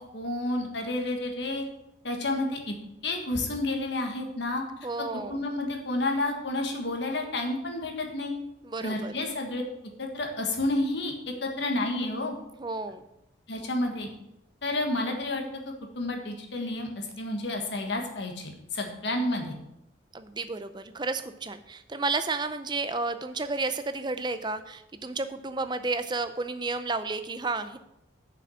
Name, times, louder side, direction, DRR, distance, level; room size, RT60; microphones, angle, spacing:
voice 1, 0.0-1.6 2.0-2.7 3.0-4.6 5.3-8.3 8.8-9.6 10.0-11.1 11.4-12.3 13.5-14.1 14.6-15.4 15.9-19.5, left 2 dB, 65° left, 2 dB, 1.6 m, -30 dB
voice 2, 4.8-5.4 8.6-9.1 12.6-13.0 20.1-27.8, right 3 dB, 25° right, 10 dB, 0.5 m, -32 dB
7.0 x 6.1 x 7.3 m, 0.86 s
head